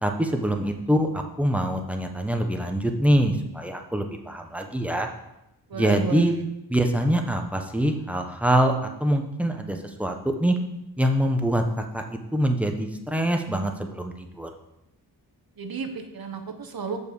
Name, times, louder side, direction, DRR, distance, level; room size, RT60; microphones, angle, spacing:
voice 1, 0.0-5.1 5.7-6.3 6.7-10.5 11.0-14.5, right 1 dB, 5° right, 4 dB, 1.2 m, -24 dB
voice 2, 5.7-6.4 15.6-17.0, right 5 dB, 60° right, 6 dB, 1.2 m, -32 dB
7.0 x 5.3 x 6.9 m, 0.88 s
cardioid pair, 65°, 40 cm